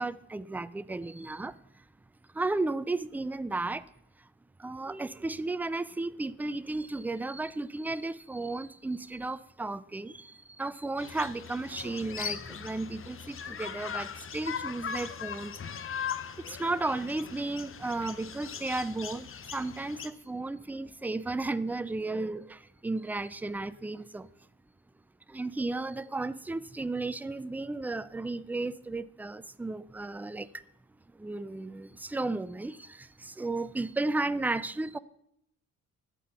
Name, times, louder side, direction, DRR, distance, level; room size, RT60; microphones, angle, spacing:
voice 1, 0.0-1.5 2.3-3.8 4.6-15.6 16.5-24.3 25.3-30.6 31.2-35.0, right 2 dB, 5° right, 0.4 m, -34 dB
sound 1, 11.0-20.1, left 7 dB, 45° left, 0.9 m, -39 dB
12.0 x 7.7 x 5.7 m
cardioid pair, 105°, 29 cm